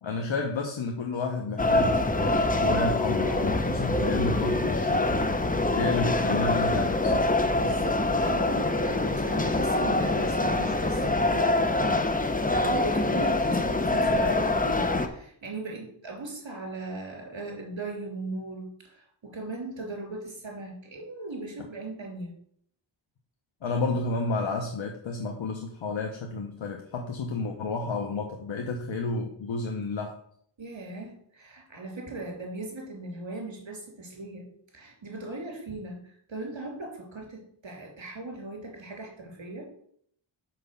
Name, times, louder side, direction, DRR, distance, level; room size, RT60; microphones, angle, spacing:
voice 1, 0.0-5.1 5.7-7.3 23.6-30.2, left 3 dB, 90° left, 2 dB, 1.0 m, -31 dB
sound 1, 1.6-15.1, left 2 dB, 20° left, 0.8 m, -25 dB
voice 2, 7.5-22.3 30.6-34.5 34.7-39.7, right 2 dB, 75° right, 0 dB, 3.2 m, -38 dB
6.1 x 5.5 x 6.9 m, 0.66 s
wide cardioid pair, 85°, 45 cm